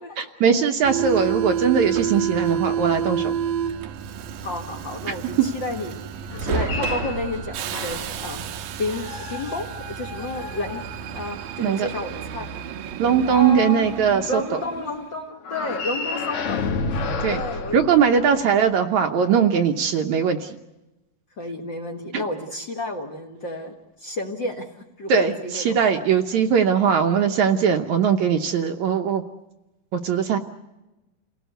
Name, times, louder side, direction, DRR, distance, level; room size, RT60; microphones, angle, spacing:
voice 1, 0.2-3.3 5.1-5.2 11.6-11.9 13.0-14.4 17.2-17.4 17.7-20.6 22.1-22.2 25.1-29.2 29.9-30.4, right 7 dB, 70° right, 6 dB, 2.0 m, -20 dB
Subway metro underground, 0.8-15.2, right 8 dB, 90° right, 3.0 m, -30 dB
voice 2, 4.4-8.5 8.8-10.8 11.1-12.5 13.3-14.0 14.3-17.0 17.3-17.8 21.4-24.7 25.0-25.9, left 2 dB, 40° left, 3 dB, 1.8 m, -31 dB
sound 1, 6.2-8.3 8.9-11.3 15.4-18.6, left 4 dB, 70° left, 3.6 m, -31 dB
29.0 x 18.0 x 8.0 m, 1.0 s
omnidirectional pair, 4.1 m